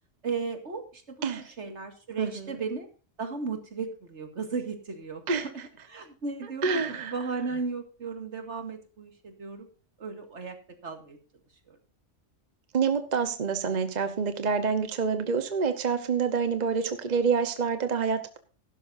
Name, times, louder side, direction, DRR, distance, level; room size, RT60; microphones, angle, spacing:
voice 1, 0.2-2.9 3.2-5.2 5.9-9.7 10.0-10.6 10.8-11.2 11.7-11.8, right 4 dB, 65° right, 6 dB, 2.3 m, -35 dB
voice 2, 2.2-2.5 5.3-5.5 6.6-7.1 12.7-18.4, right 5 dB, 40° right, 9 dB, 1.1 m, -27 dB
15.5 x 12.0 x 2.6 m, 0.37 s
omnidirectional pair, 1.3 m